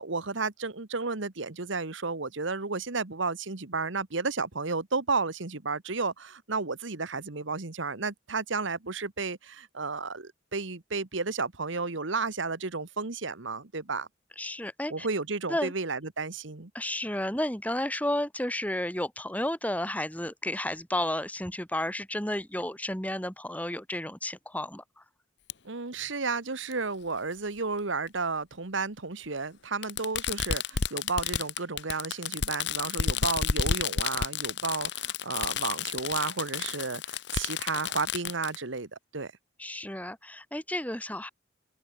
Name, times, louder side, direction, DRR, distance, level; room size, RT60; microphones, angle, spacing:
voice 1, 0.0-14.1 14.9-16.7 25.6-39.3, right 4 dB, 70° right, 1.4 m, -32 dB
voice 2, 14.4-15.1 15.5-15.7 16.7-24.8 39.6-41.3, left 1 dB, 5° left, 2.7 m, -32 dB
Fireworks, 25.5-25.6 26.7-26.8 28.1-28.2 29.8-38.6, left 7 dB, 60° left, 0.8 m, -31 dB
open air
head